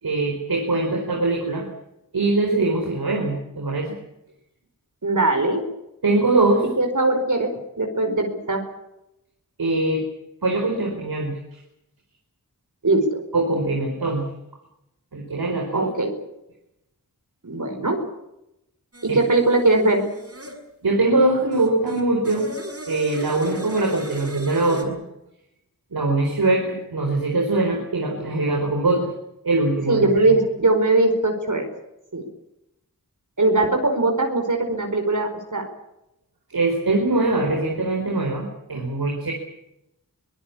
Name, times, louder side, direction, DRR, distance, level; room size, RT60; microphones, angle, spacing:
voice 1, 0.0-1.7 2.1-4.0 6.0-6.6 9.6-10.1 10.4-11.3 13.3-14.3 15.1-15.9 19.1-19.2 20.8-22.6 22.9-25.0 25.9-29.1 29.4-30.0 36.5-39.3, right 2 dB, 80° right, 1 dB, 4.6 m, -22 dB
voice 2, 5.0-5.6 6.8-7.5 7.8-8.6 12.8-13.2 15.7-16.1 17.4-18.0 19.0-20.1 29.9-31.7 32.1-32.3 33.4-35.7, right 2 dB, 55° right, 3 dB, 4.9 m, -20 dB
sound 1, 18.9-20.6 21.5-24.8, equal, 40° right, 6.7 m, -37 dB
24.0 x 19.0 x 8.6 m, 0.86 s
cardioid pair, 40°, 36 cm